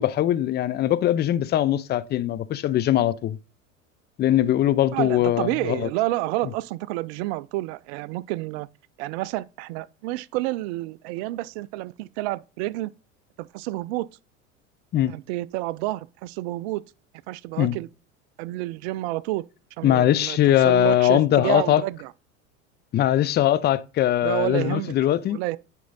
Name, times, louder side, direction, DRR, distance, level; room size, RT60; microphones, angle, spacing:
voice 1, 0.0-3.4 4.2-5.9 14.9-15.1 17.6-17.8 19.8-21.8 22.9-25.4, left 12 dB, 25° left, 0.5 m, -21 dB
voice 2, 4.9-8.7 9.0-12.9 13.4-14.1 15.1-16.8 17.3-17.9 18.4-19.4 19.8-20.4 20.6-22.1 24.2-24.9 25.3-25.6, right 18 dB, 55° right, 0.4 m, -29 dB
9.2 x 4.5 x 4.0 m
hypercardioid pair, 80°, 39 cm